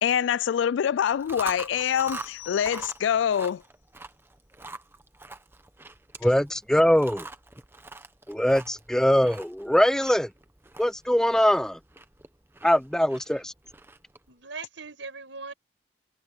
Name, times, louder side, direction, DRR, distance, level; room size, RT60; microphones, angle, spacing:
voice 1, 0.0-3.6, left 8 dB, 80° left, 0.3 m, -25 dB
Chewing mastication, 1.1-14.3, right 3 dB, 10° right, 1.0 m, -44 dB
sound 1, 1.8-3.3, left 21 dB, 35° left, 3.8 m, -44 dB
voice 2, 6.2-7.3 8.3-10.3 10.8-11.8 12.6-13.5, equal, 5° left, 0.4 m, -22 dB
voice 3, 14.3-15.5, right 4 dB, 85° right, 6.3 m, -39 dB
head